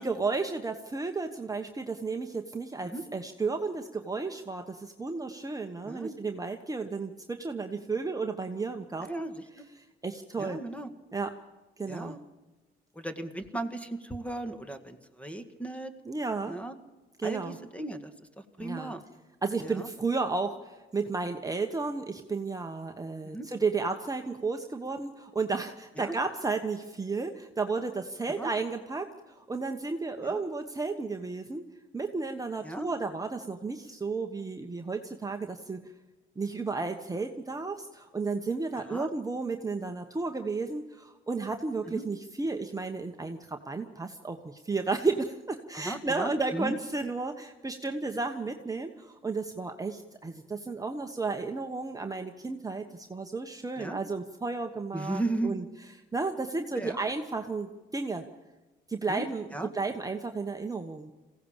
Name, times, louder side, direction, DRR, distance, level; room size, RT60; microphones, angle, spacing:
voice 1, 0.0-9.1 10.0-10.6 11.1-11.3 11.8-12.2 16.1-16.6 17.2-17.6 18.6-18.9 19.4-29.1 29.3-31.6 31.9-35.8 36.4-55.6 56.1-58.2 58.9-59.5 59.7-61.1, right 4 dB, 15° right, 4 dB, 1.1 m, -33 dB
voice 2, 5.8-6.1 9.0-9.7 10.4-10.9 11.9-12.2 13.0-15.9 16.5-16.7 17.2-18.3 18.6-19.0 19.6-19.9 23.2-23.5 26.0-26.2 28.3-28.5 30.2-30.4 32.6-32.9 38.7-39.1 41.9-42.1 45.7-46.7 53.8-54.0 54.9-55.6 56.8-57.0 59.1-59.3 59.5-59.7, right 2 dB, 5° left, 8 dB, 1.8 m, -36 dB
22.0 x 16.5 x 7.3 m, 1.1 s
cardioid pair, 90°, 20 cm